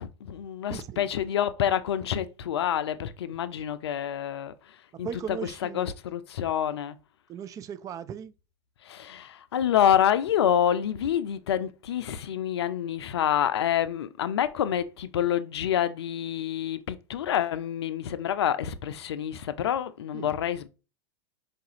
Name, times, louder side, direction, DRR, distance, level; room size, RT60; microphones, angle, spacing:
voice 1, 0.0-7.0 8.8-20.7, left 10 dB, 75° left, 0.4 m, -27 dB
voice 2, 0.7-1.1 4.9-5.9 7.3-8.3 20.1-20.3, right 8 dB, 25° right, 0.3 m, -37 dB
4.6 x 2.5 x 2.9 m
hypercardioid pair, 95°, 14 cm